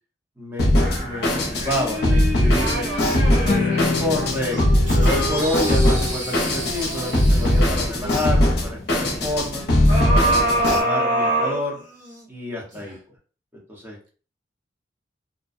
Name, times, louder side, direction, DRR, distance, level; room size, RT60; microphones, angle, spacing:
voice 1, 0.4-2.9 4.0-4.6 4.9-9.7 10.1-11.8 12.3-13.0 13.7-14.0, left 1 dB, 10° right, -3 dB, 0.8 m, -28 dB
Drum kit, 0.6-10.8, left 1 dB, 60° left, 0.7 m, -20 dB
sound 1, 0.8-4.0 4.5-8.1 9.9-12.2 12.7-12.8, right 1 dB, 45° right, 0.9 m, -26 dB
voice 2, 2.5-4.3, right 4 dB, 60° right, 3 dB, 0.3 m, -34 dB
sound 2, 3.4-9.7, left 5 dB, 45° left, 0.3 m, -30 dB
2.5 x 2.1 x 2.4 m, 0.38 s
head